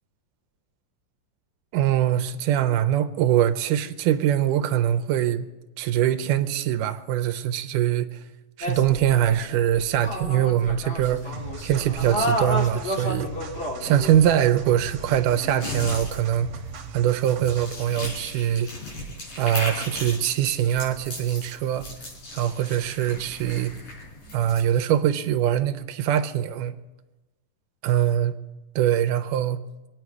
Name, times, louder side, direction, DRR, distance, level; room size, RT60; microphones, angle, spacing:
voice 1, 1.7-5.5 5.8-8.2 8.6-11.3 11.6-13.3 13.8-16.5 16.9-18.7 19.4-21.9 22.3-23.7 24.3-26.7 27.8-28.3 28.8-29.6, right 11 dB, 85° right, 2.2 m, -23 dB
sound 1, 8.6-16.2, equal, 30° left, 1.3 m, -32 dB
sound 2, 11.3-17.9, right 5 dB, 60° right, 1.9 m, -39 dB
sound 3, 15.6-24.6, left 1 dB, 80° left, 6.7 m, -37 dB
25.0 x 9.3 x 4.7 m
omnidirectional pair, 3.7 m